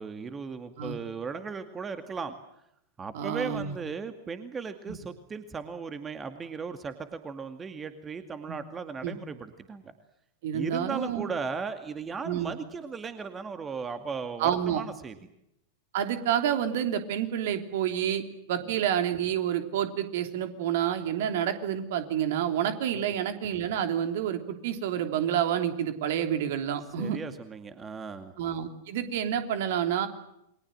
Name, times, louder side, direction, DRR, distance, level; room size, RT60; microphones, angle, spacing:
voice 1, 0.0-2.4 3.0-9.9 10.5-15.2 22.9-23.1 27.0-28.3, right 5 dB, 20° right, 8 dB, 2.2 m, -36 dB
voice 2, 3.1-3.8 4.9-5.0 8.5-8.6 9.0-9.2 10.4-11.3 12.2-12.5 14.4-14.8 15.9-18.2 18.5-27.2 28.4-30.1, right 9 dB, 55° right, 7 dB, 3.2 m, -29 dB
29.5 x 23.5 x 7.8 m, 0.81 s
figure-of-eight pair, 90°, 0 cm